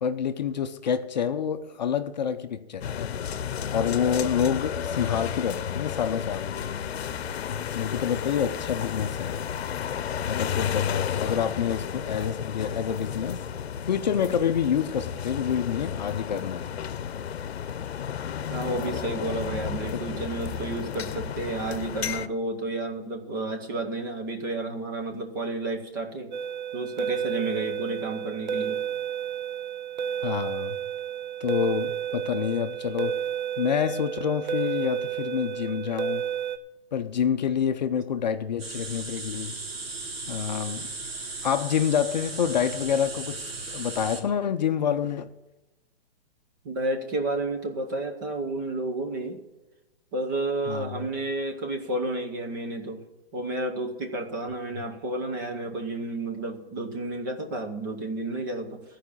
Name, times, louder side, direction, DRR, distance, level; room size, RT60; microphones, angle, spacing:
voice 1, 0.0-3.2 3.7-6.6 7.7-9.4 10.3-13.4 13.8-16.7 30.2-30.8 31.4-33.2 33.6-36.3 36.9-39.6 40.3-40.9 41.4-45.3 50.7-51.1 54.8-54.9, left 8 dB, 45° left, 0.6 m, -27 dB
sound 1, 2.8-22.3, left 8 dB, 85° left, 0.8 m, -32 dB
voice 2, 18.5-26.3 26.7-28.8 46.6-49.4 50.1-53.0 53.3-58.8, right 2 dB, 20° right, 0.8 m, -31 dB
sound 2, 26.3-36.6, right 8 dB, 50° right, 0.6 m, -31 dB
sound 3, 38.6-44.2, right 3 dB, 70° right, 2.3 m, -36 dB
14.0 x 5.0 x 8.5 m
hypercardioid pair, 175°, 31 cm